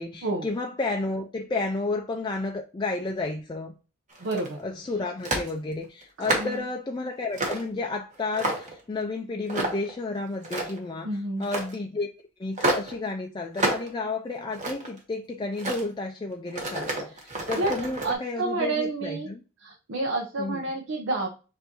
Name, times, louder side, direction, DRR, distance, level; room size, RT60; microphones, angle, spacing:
voice 1, 0.0-3.8 4.6-12.1 12.4-19.4 20.4-20.6, left 3 dB, 20° left, 0.3 m, -32 dB
sound 1, 4.1-4.6 5.2-5.5 6.0-6.6 7.3-7.7 8.1-8.8 9.5-9.9 10.3-10.9 11.4-11.7 12.6-12.9 13.5-13.9 14.3-15.0 15.5-15.8 16.5-18.1, right 2 dB, 35° right, 1.3 m, -29 dB
voice 2, 4.2-4.6 6.2-6.6 11.0-11.5 17.1-17.2 17.6-17.7 18.0-19.3 19.6-21.3, right 2 dB, 70° right, 0.7 m, -29 dB
6.7 x 2.6 x 2.8 m
head